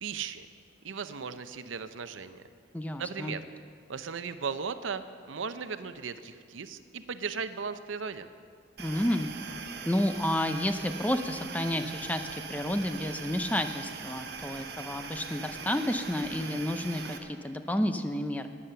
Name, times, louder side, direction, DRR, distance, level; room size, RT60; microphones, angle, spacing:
voice 1, 0.0-0.5 0.8-2.4 3.0-3.5 3.9-5.0 5.3-8.3, right 5 dB, 85° right, 11 dB, 0.6 m, -36 dB
voice 2, 2.7-3.4 8.8-9.3 9.9-18.5, left 1 dB, 10° left, 8 dB, 0.5 m, -30 dB
sound 1, 8.8-17.2, right 5 dB, 55° right, 1.1 m, -41 dB
13.5 x 9.8 x 6.8 m, 2.1 s
head